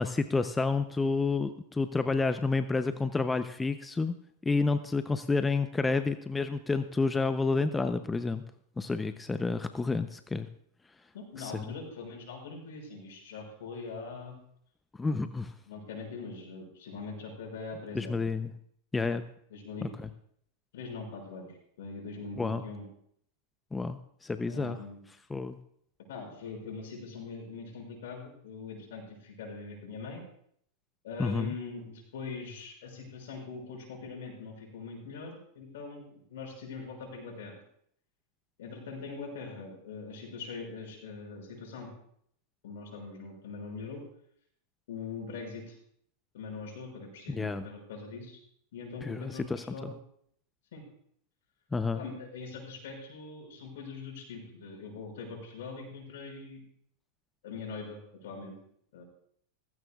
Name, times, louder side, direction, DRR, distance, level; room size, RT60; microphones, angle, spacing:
voice 1, 0.0-4.2 4.4-8.4 8.8-10.5 11.4-11.7 15.0-15.5 17.9-18.5 18.9-19.2 22.4-22.6 23.7-24.8 25.3-25.6 31.2-31.5 47.3-47.6 49.0-49.9 51.7-52.0, left 3 dB, 15° left, 10 dB, 0.6 m, -30 dB
voice 2, 11.1-14.4 15.7-18.2 19.5-19.9 20.7-22.9 24.5-25.0 26.1-30.2 31.0-37.6 38.6-41.9 42.6-44.0 44.9-45.8 46.3-48.4 48.7-49.9 50.7-50.9 51.9-56.6 57.4-58.5 58.9-59.0, left 4 dB, 75° left, 0 dB, 6.1 m, -42 dB
17.0 x 15.5 x 2.4 m, 0.67 s
hypercardioid pair, 105°, 0 cm